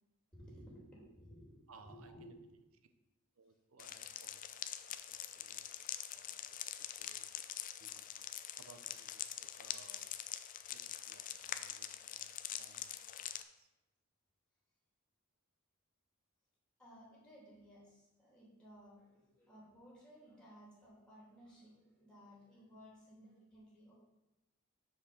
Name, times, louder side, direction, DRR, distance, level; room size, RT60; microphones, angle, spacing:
voice 1, 0.3-2.3 7.1-7.3 16.8-23.9, equal, 5° left, -5 dB, 3.1 m, -58 dB
voice 2, 1.7-2.4 3.4-6.4 6.8-7.4 7.8-8.1 8.6-10.1 10.7-12.9 13.2-13.3 13.6-13.7, right 4 dB, 85° right, 8 dB, 0.8 m, -63 dB
sound 1, 3.8-13.4, left 10 dB, 40° left, 0.4 m, -45 dB
6.6 x 5.1 x 7.1 m, 0.98 s
head